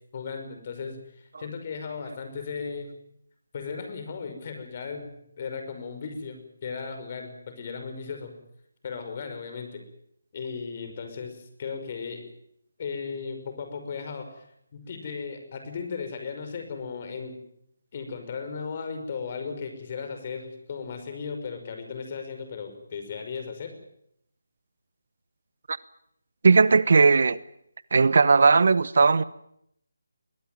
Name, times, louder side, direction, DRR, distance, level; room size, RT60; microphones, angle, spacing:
voice 1, 0.1-2.9 3.5-8.3 8.8-9.8 10.3-12.3 12.8-14.4 14.7-17.4 17.9-23.7, left 5 dB, 35° left, 5.9 m, -36 dB
voice 2, 26.4-27.4 27.9-29.2, right 4 dB, 55° right, 0.9 m, -18 dB
22.0 x 19.0 x 9.4 m
figure-of-eight pair, 155°, 0 cm